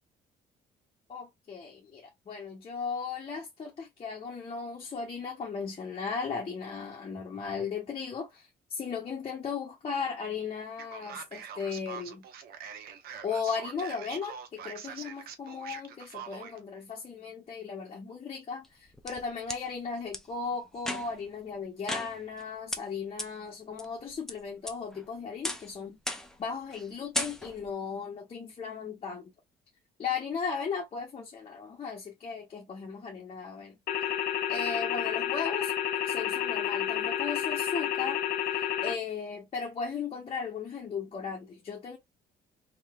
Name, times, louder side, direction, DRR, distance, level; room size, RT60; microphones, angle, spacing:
voice 1, 1.1-12.2 13.2-26.0 26.4-29.3 30.0-33.8 34.5-35.7 36.0-38.2 38.5-42.0, left 5 dB, 35° left, 1.0 m, -36 dB
Male speech man speaking, 10.8-16.6, right 8 dB, 65° right, 0.8 m, -44 dB
sound 1, 18.6-19.6 20.1-20.2 20.8-21.3 21.9-22.4 22.7-22.8 23.2-23.3 23.8-24.3 24.7-25.1 25.4-25.7 26.1-26.4 26.7-26.9 27.1-27.7, left 1 dB, 5° left, 0.6 m, -35 dB
sound 2, 33.9-38.9, left 10 dB, 65° left, 0.6 m, -30 dB
3.1 x 2.9 x 2.3 m
cardioid pair, 110°, 17 cm